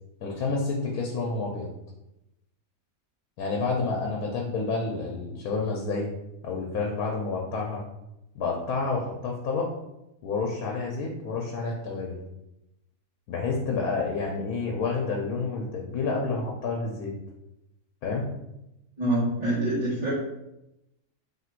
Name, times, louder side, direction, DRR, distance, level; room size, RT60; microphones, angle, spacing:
voice 1, 0.2-1.7 3.4-6.1 6.4-7.8 8.3-9.7 10.2-12.1 13.3-17.1 18.0-18.3, left 4 dB, 85° left, -1 dB, 1.2 m, -29 dB
voice 2, 19.0-20.1, right 1 dB, 30° right, -10 dB, 1.0 m, -25 dB
3.3 x 2.5 x 4.4 m, 0.89 s
omnidirectional pair, 1.5 m